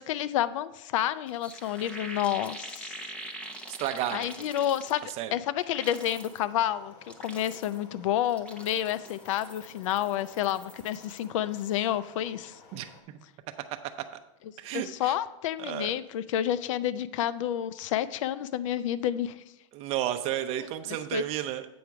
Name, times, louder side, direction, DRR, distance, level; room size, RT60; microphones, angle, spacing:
voice 1, 0.0-3.0 4.1-5.0 5.3-6.9 7.2-12.6 14.7-19.4 20.6-20.7 21.1-21.2, left 11 dB, 70° left, 16 dB, 0.4 m, -29 dB
sound 1, 1.0-1.1 1.3-5.3 5.6-6.4 6.9-7.9 8.3-11.3 11.5-11.9, right 1 dB, 5° left, 0.7 m, -44 dB
voice 2, 3.8-4.5 5.2-5.3 12.7-12.9 14.6-15.1 15.6-15.9 19.7-21.7, right 12 dB, 40° right, 8 dB, 0.7 m, -32 dB
sound 2, 5.9-13.0, left 4 dB, 55° left, 1.1 m, -54 dB
8.5 x 5.1 x 4.6 m, 0.94 s
supercardioid pair, 145°, 17 cm